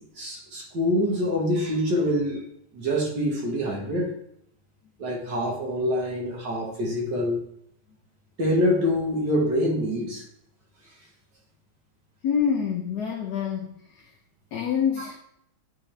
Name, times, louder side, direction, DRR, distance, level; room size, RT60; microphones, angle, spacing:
voice 1, 0.0-2.4 2.7-4.1 5.0-7.4 8.4-10.2, left 1 dB, 60° right, -2 dB, 2.0 m, -25 dB
voice 2, 12.2-14.1 14.5-15.2, left 7 dB, 60° left, 0 dB, 1.2 m, -26 dB
10.0 x 3.7 x 3.3 m, 0.72 s
omnidirectional pair, 2.2 m